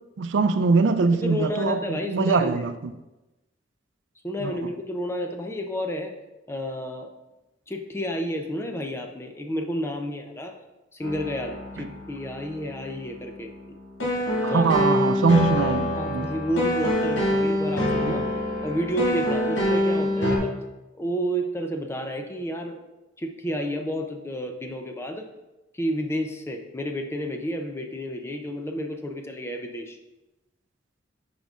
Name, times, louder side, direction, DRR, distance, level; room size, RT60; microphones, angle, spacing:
voice 1, 0.2-2.9 4.4-4.7 14.4-16.3 18.1-18.2, right 4 dB, 70° right, 0.4 m, -23 dB
voice 2, 1.2-2.7 4.2-6.1 6.5-7.1 7.7-10.5 10.9-13.5 14.4-14.7 15.9-18.2 18.6-20.5 21.0-22.8 23.2-25.2 25.7-30.0, equal, 15° left, 0.5 m, -30 dB
sound 1, 11.0-20.4, left 1 dB, 90° left, 2.1 m, -26 dB
8.8 x 5.2 x 2.4 m
head